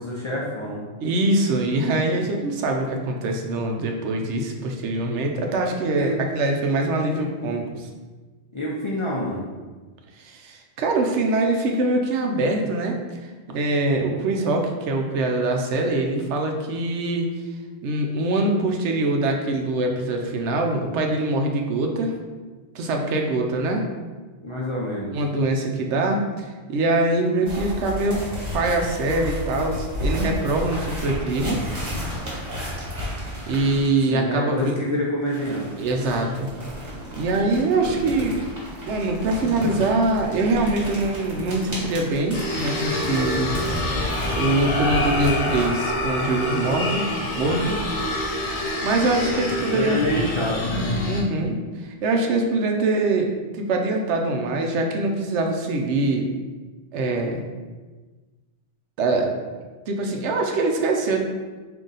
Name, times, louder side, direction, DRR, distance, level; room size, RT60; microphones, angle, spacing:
voice 1, 0.0-0.8 6.0-6.1 8.5-9.5 24.4-25.1 34.1-35.9 49.7-51.1, left 1 dB, 40° left, -6 dB, 0.5 m, -27 dB
voice 2, 1.0-7.9 10.2-13.0 13.5-17.3 17.8-22.1 22.7-23.8 25.1-28.2 28.5-31.6 33.5-34.8 35.8-36.5 37.1-38.4 38.8-43.5 44.3-47.0 47.3-47.8 48.8-50.0 51.0-53.3 53.5-56.3 56.9-57.4 59.0-59.3 59.9-61.2, right 2 dB, 85° right, 2 dB, 0.9 m, -23 dB
sound 1, 27.5-34.0 35.3-45.7, left 1 dB, 40° right, 1.4 m, -32 dB
sound 2, 42.3-51.2, left 1 dB, 80° left, 1.1 m, -27 dB
3.8 x 2.7 x 3.9 m, 1.3 s
omnidirectional pair, 1.2 m